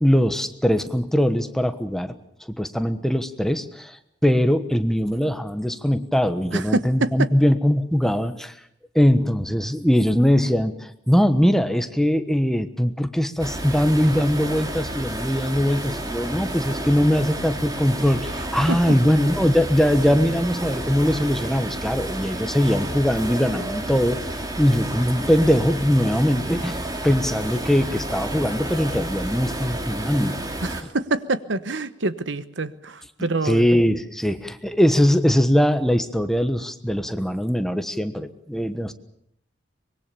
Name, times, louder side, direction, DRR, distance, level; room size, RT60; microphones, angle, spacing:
voice 1, 0.0-2.2 2.6-8.5 8.9-24.3 24.6-30.4 33.4-38.9, equal, ahead, 9 dB, 1.2 m, -21 dB
voice 2, 6.5-7.3 18.7-18.8 30.6-33.7, right 2 dB, 80° right, 14 dB, 1.1 m, -26 dB
sound 1, 13.4-30.8, right 1 dB, 20° right, 2.5 m, -31 dB
24.5 x 22.0 x 7.0 m, 0.73 s
head